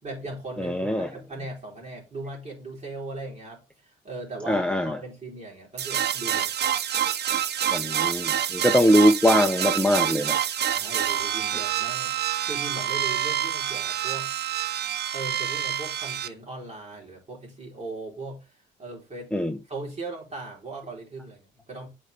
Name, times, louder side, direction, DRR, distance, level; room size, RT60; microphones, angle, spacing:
voice 1, 0.0-6.5 10.7-14.3 15.1-19.3 19.7-21.9, right 2 dB, 35° right, 3.9 m, -38 dB
voice 2, 0.6-1.1 4.4-5.0 7.7-10.3 11.1-11.2 19.3-19.6, equal, 5° left, 0.7 m, -22 dB
sound 1, 5.8-16.3, right 10 dB, 55° right, 0.6 m, -27 dB
7.9 x 4.4 x 3.4 m
cardioid pair, 90°, 20 cm